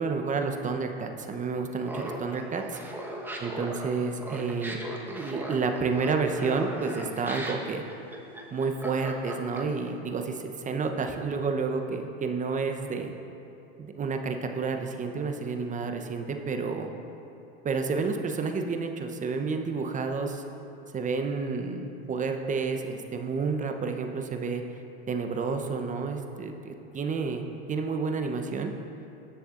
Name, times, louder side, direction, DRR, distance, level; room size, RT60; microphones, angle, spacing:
voice 1, 0.0-2.8 3.4-7.8 8.5-13.1 13.8-16.9 17.6-20.4 20.9-24.6 25.1-28.7, right 4 dB, 25° right, 5 dB, 0.8 m, -30 dB
Laughter, 1.8-9.9, right 1 dB, 5° right, 1.2 m, -38 dB
18.0 x 6.9 x 2.5 m, 2.8 s
hypercardioid pair, 95°, 32 cm